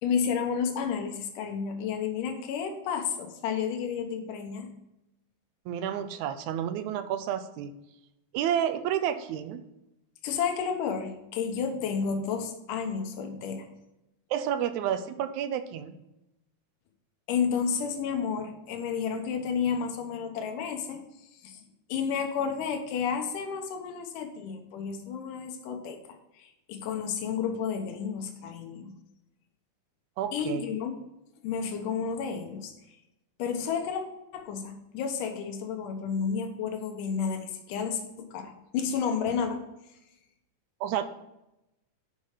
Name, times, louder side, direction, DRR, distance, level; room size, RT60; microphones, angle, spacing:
voice 1, 0.0-4.7 10.2-13.7 17.3-21.0 21.4-26.0 26.4-28.9 30.3-31.0 31.4-32.7 33.4-34.0 34.3-39.6, left 6 dB, 85° left, 4 dB, 2.6 m, -31 dB
voice 2, 5.7-7.8 8.3-9.7 14.3-16.0 30.2-30.6 40.8-41.0, right 10 dB, 80° right, 11 dB, 1.9 m, -30 dB
9.6 x 5.5 x 4.9 m, 0.89 s
omnidirectional pair, 3.6 m